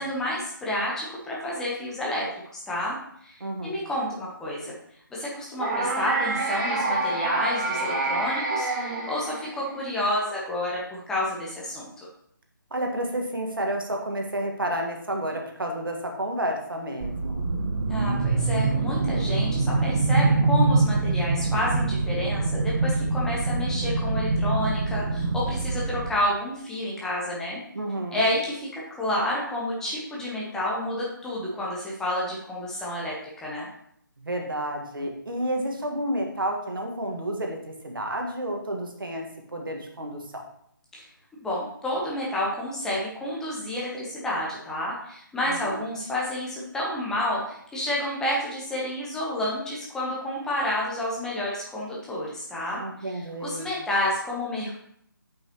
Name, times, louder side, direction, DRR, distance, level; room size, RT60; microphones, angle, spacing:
voice 1, 0.0-2.3 2.5-3.0 3.2-4.7 5.1-11.9 17.9-27.6 28.1-33.6 40.9-41.0 41.4-52.8 53.4-54.8, left 1 dB, 5° left, -5 dB, 1.0 m, -30 dB
voice 2, 3.4-3.8 12.7-17.5 27.7-28.3 34.2-40.4 45.4-45.8 52.8-53.8, right 1 dB, 75° right, 2 dB, 1.7 m, -31 dB
sound 1, 5.6-9.8, right 2 dB, 25° right, 1.5 m, -27 dB
sound 2, 17.0-26.1, right 3 dB, 40° right, 1.1 m, -24 dB
8.7 x 5.7 x 3.0 m, 0.69 s
figure-of-eight pair, 155°, 12 cm